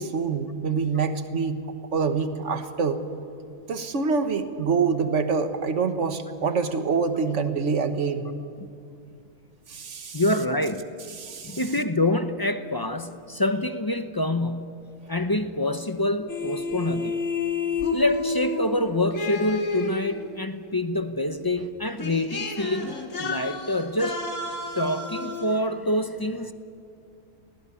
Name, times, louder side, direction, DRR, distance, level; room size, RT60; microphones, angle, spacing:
voice 1, 0.0-1.6 1.9-3.0 3.7-8.3 9.7-10.2 11.2-11.6, right 5 dB, 50° right, 9 dB, 1.6 m, -26 dB
voice 2, 10.1-10.8 11.4-14.8 15.1-17.2 17.9-24.2 24.7-26.5, left 1 dB, 25° left, 9 dB, 0.4 m, -26 dB
sound 1, 16.3-20.4 21.6-21.7 22.0-25.6, left 3 dB, 55° left, 2.3 m, -30 dB
20.5 x 16.5 x 9.8 m, 2.5 s
omnidirectional pair, 1.7 m